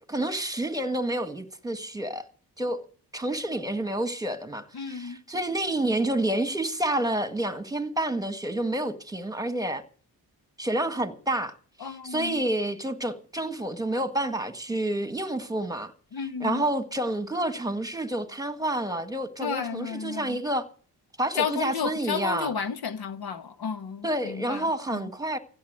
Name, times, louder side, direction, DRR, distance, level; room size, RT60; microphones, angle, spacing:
voice 1, 0.1-2.2 2.6-2.8 3.1-9.8 10.6-15.9 16.4-20.6 21.2-22.5 24.0-25.4, right 1 dB, 10° right, 1.6 m, -29 dB
voice 2, 4.7-5.2 11.8-12.4 16.1-16.6 19.4-20.4 21.3-25.1, left 6 dB, 70° left, 1.2 m, -32 dB
16.0 x 7.2 x 9.3 m
cardioid pair, 95°, 38 cm